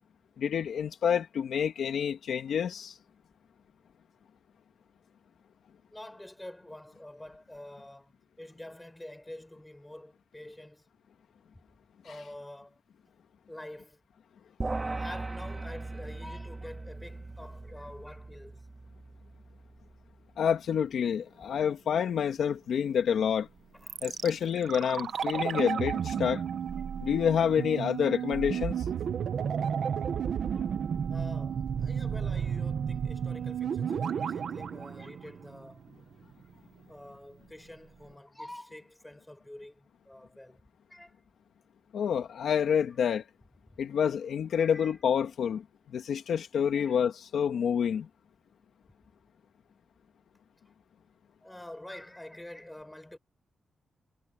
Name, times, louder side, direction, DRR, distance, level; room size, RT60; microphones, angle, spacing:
voice 1, 0.4-2.9 20.4-23.5 24.0-26.4 27.0-28.8 41.9-43.2 43.8-45.6 45.9-48.1, left 8 dB, 75° left, 2.2 m, -28 dB
voice 2, 5.9-10.9 11.5-11.6 12.0-12.8 13.5-14.0 15.0-18.7 20.4-20.6 23.8-24.0 25.5-25.6 30.5-30.6 31.1-35.9 36.9-40.6 40.9-41.2 42.9-43.0 44.6-45.0 46.5-47.0 51.4-53.2, left 1 dB, 5° left, 7.8 m, -47 dB
sound 1, 14.6-20.1, right 2 dB, 20° right, 2.0 m, -39 dB
sound 2, 23.9-35.9 36.1-36.2, right 7 dB, 60° right, 1.2 m, -32 dB
wide cardioid pair, 175°, 0 cm